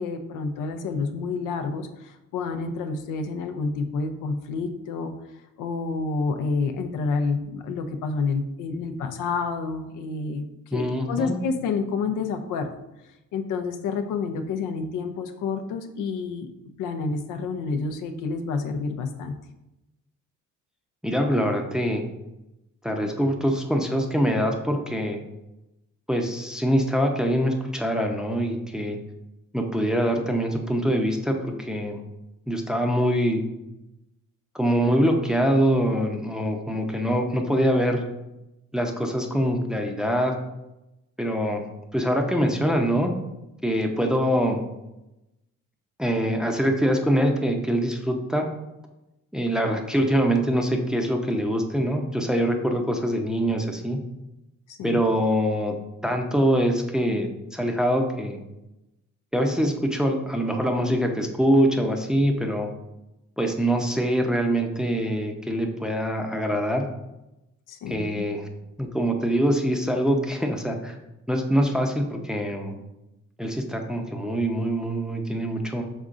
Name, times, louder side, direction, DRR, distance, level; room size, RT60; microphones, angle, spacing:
voice 1, 0.0-5.1 5.6-12.8 13.3-16.5 16.8-19.3 54.7-55.0 67.7-68.2, left 4 dB, 85° left, 6 dB, 0.5 m, -29 dB
voice 2, 10.7-11.4 21.0-22.0 22.8-25.2 26.1-29.0 29.5-32.0 32.5-33.4 34.5-38.0 38.7-40.3 41.2-41.7 41.9-43.1 43.6-44.6 46.0-48.4 49.3-54.0 54.8-55.7 56.0-58.4 59.3-62.7 63.4-66.9 67.9-68.5 68.8-71.0 71.3-72.8 73.4-75.8, equal, ahead, 2 dB, 0.5 m, -24 dB
5.2 x 3.6 x 2.5 m, 0.93 s
cardioid pair, 90°, 30 cm